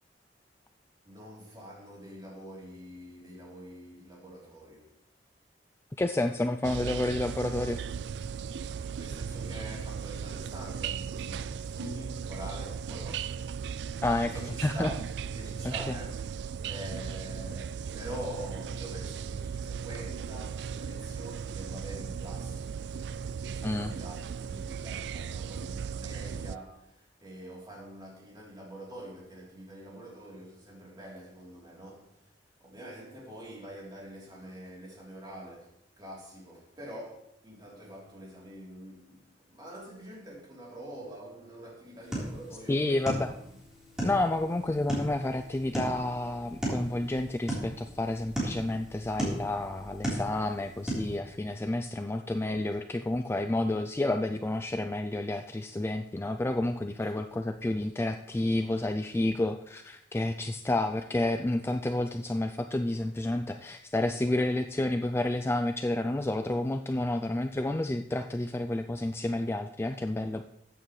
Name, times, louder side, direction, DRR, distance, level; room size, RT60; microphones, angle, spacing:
voice 1, 1.0-5.0 8.8-13.8 14.3-16.2 16.6-22.9 23.4-32.3 32.6-43.4, equal, 25° right, 3.3 m, -45 dB
voice 2, 6.0-7.8 14.0-14.3 14.6-14.9 15.9-16.0 23.6-23.9 42.7-43.3 44.0-70.4, left 2 dB, 15° left, 0.3 m, -30 dB
sound 1, 6.6-26.6, right 6 dB, 70° right, 0.3 m, -37 dB
sound 2, 42.0-51.2, right 1 dB, 5° right, 3.8 m, -36 dB
14.0 x 9.0 x 3.2 m
head